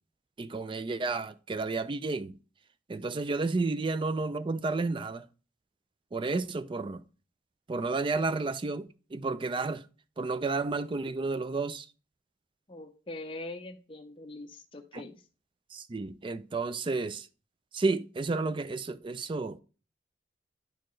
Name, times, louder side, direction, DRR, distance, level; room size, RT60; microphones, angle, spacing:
voice 1, 0.4-2.3 2.9-5.3 6.1-7.0 7.7-9.9 10.2-11.9 14.9-15.0 15.7-17.3 17.7-19.6, right 3 dB, 25° right, 0.4 m, -31 dB
voice 2, 12.7-15.2, left 2 dB, 30° left, 0.6 m, -42 dB
10.5 x 4.4 x 3.1 m
head